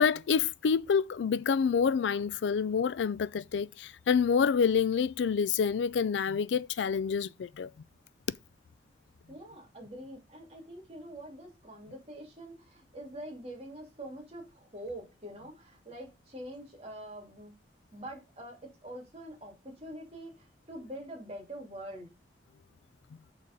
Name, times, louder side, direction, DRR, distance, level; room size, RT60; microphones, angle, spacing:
voice 1, 0.0-7.7, left 6 dB, 85° left, 0.4 m, -27 dB
voice 2, 9.3-17.5 17.9-22.1, right 1 dB, 35° right, 2.7 m, -45 dB
6.4 x 4.1 x 5.2 m
head